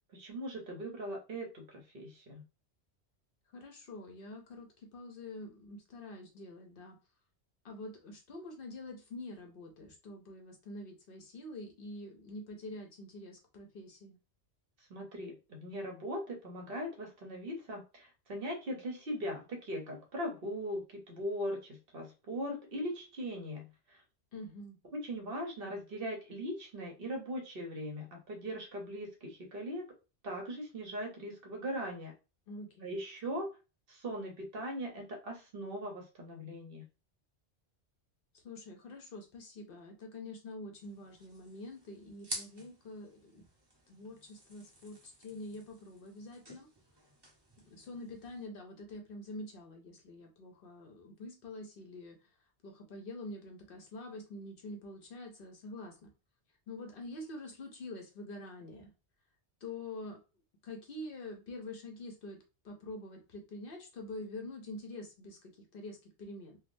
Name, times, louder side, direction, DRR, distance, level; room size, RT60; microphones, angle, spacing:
voice 1, 0.1-2.4 14.9-24.0 24.9-29.9 30.2-32.1 32.8-33.5 33.9-36.8, equal, 60° right, 2 dB, 1.0 m, -40 dB
voice 2, 3.5-7.0 7.6-14.2 24.3-24.8 32.5-33.0 38.3-43.5 43.9-46.7 47.6-52.3 52.6-56.1 56.7-58.9 59.6-60.2 60.6-62.4 62.6-66.6, left 2 dB, 60° left, 3 dB, 0.8 m, -46 dB
sound 1, 40.8-48.5, right 1 dB, 25° right, 0.8 m, -50 dB
3.4 x 2.2 x 2.5 m, 0.30 s
omnidirectional pair, 1.2 m